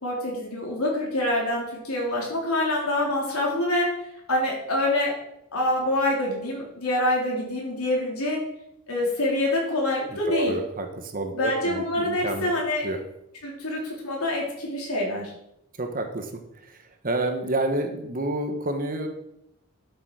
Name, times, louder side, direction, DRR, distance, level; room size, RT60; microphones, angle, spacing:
voice 1, 0.0-3.9 4.3-5.1 5.5-8.4 8.9-10.5 11.3-12.8 13.4-15.3, left 1 dB, 80° left, -2 dB, 3.7 m, -26 dB
voice 2, 10.3-12.5 12.8-13.0 15.8-19.1, right 2 dB, 40° right, 5 dB, 1.3 m, -29 dB
11.5 x 7.0 x 4.9 m, 0.80 s
head